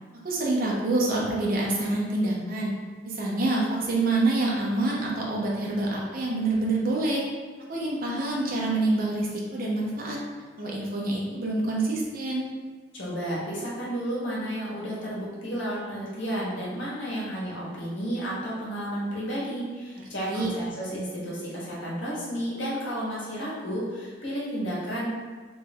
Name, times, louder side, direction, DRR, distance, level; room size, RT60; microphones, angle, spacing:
voice 1, 0.2-2.7 3.0-7.2 7.7-10.2 10.6-12.5 20.2-20.5, right 2 dB, 50° right, -4 dB, 0.8 m, -26 dB
voice 2, 12.9-25.1, equal, 85° left, -7 dB, 1.4 m, -32 dB
3.2 x 3.2 x 3.5 m, 1.5 s
head